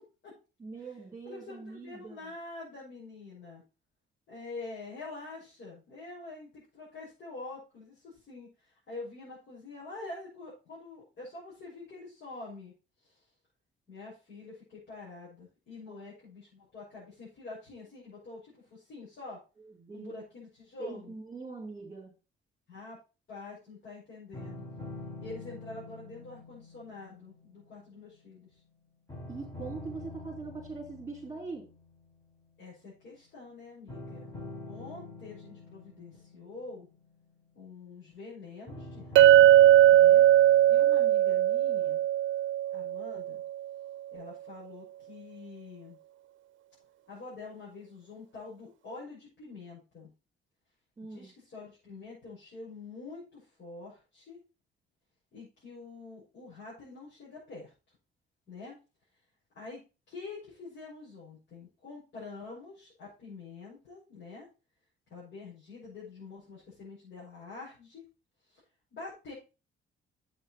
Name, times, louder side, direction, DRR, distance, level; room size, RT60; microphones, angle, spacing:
voice 1, 0.6-2.3 15.9-16.0 19.6-20.2 20.8-22.1 29.3-31.7 51.0-51.3, right 4 dB, 15° right, 0 dB, 4.1 m, -42 dB
voice 2, 1.2-3.6 4.3-12.7 13.0-13.1 13.9-19.4 19.9-21.1 22.7-23.0 23.3-24.7 25.2-28.5 32.6-34.3 34.7-36.9 37.5-40.2 40.7-42.0 42.7-43.4 44.1-46.0 47.1-50.1 51.1-54.4 55.3-57.7 58.5-58.8 59.5-59.8 60.1-64.5 65.1-68.0 68.9-69.3, left 3 dB, 65° left, -7 dB, 6.2 m, -46 dB
sound 1, 24.3-28.7 29.1-32.4 33.9-37.9 38.7-40.9, left 2 dB, 20° left, 4.4 m, -46 dB
Chink clink, 39.2-43.4, right 13 dB, 75° right, 0.5 m, -20 dB
8.0 x 7.2 x 4.5 m, 0.31 s
cardioid pair, 90°, 20 cm